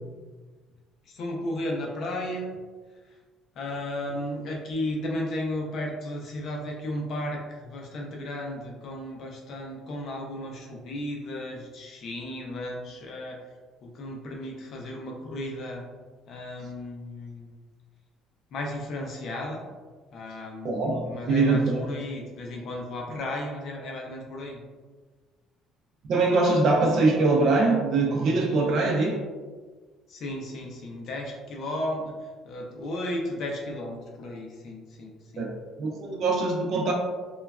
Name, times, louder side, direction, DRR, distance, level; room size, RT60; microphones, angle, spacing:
voice 1, 1.1-2.5 3.6-13.4 13.8-15.8 16.3-17.5 18.5-19.7 20.1-24.6 30.1-32.2 32.4-35.5, left 1 dB, 45° left, 0 dB, 0.5 m, -34 dB
voice 2, 20.6-22.0 26.1-29.2 35.4-36.9, right 3 dB, 45° right, 1 dB, 0.5 m, -23 dB
3.1 x 2.2 x 2.3 m, 1.4 s
cardioid pair, 165°, 0 cm